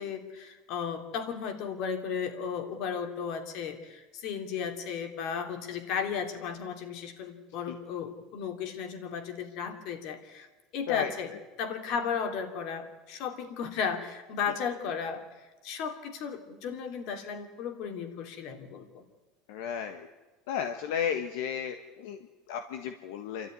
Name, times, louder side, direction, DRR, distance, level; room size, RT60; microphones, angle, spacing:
voice 1, 0.0-10.5 10.7-11.3 11.6-19.0, left 6 dB, 55° left, 6 dB, 3.0 m, -35 dB
voice 2, 19.5-20.1 20.5-23.5, left 8 dB, 80° left, 5 dB, 1.5 m, -33 dB
28.0 x 13.0 x 9.7 m, 1.2 s
cardioid pair, 155°, 0 cm